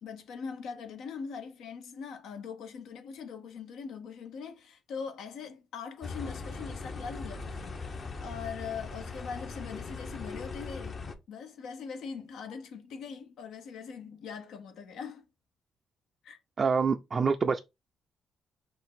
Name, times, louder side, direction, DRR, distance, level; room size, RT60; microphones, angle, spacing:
voice 1, 0.0-11.0 11.3-15.2 16.2-16.4, left 6 dB, 80° left, 0.8 m, -41 dB
sound 1, 6.0-11.1, left 4 dB, 40° left, 0.8 m, -40 dB
voice 2, 16.6-17.6, right 5 dB, 40° right, 0.4 m, -26 dB
4.4 x 2.5 x 3.6 m
cardioid pair, 90°, 0 cm